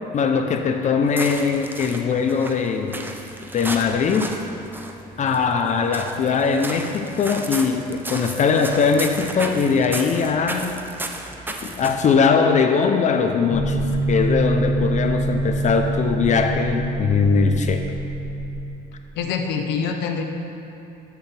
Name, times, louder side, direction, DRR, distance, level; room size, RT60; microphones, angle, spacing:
voice 1, 0.1-3.1 3.5-4.3 5.2-10.7 11.6-17.8, left 5 dB, 45° left, 5 dB, 0.6 m, -21 dB
sound 1, 1.0-12.2, right 2 dB, 10° right, 0.7 m, -34 dB
sound 2, 13.5-18.7, right 2 dB, 15° left, 1.6 m, -25 dB
voice 2, 19.2-20.2, left 6 dB, 85° left, 4 dB, 0.9 m, -25 dB
14.0 x 6.9 x 3.4 m, 2.8 s
cardioid pair, 110°, 17 cm